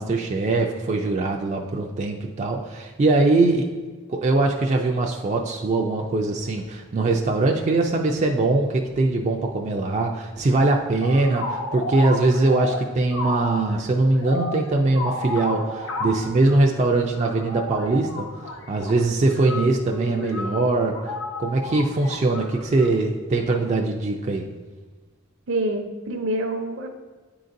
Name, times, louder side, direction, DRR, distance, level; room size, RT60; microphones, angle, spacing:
voice 1, 0.0-3.7 4.1-21.1 21.4-24.5, right 2 dB, 35° right, 1 dB, 0.3 m, -22 dB
sound 1, 11.0-22.9, left 2 dB, 80° left, 0.7 m, -32 dB
voice 2, 25.5-26.9, right 1 dB, 65° right, 5 dB, 0.7 m, -26 dB
9.6 x 3.9 x 2.6 m, 1.4 s
head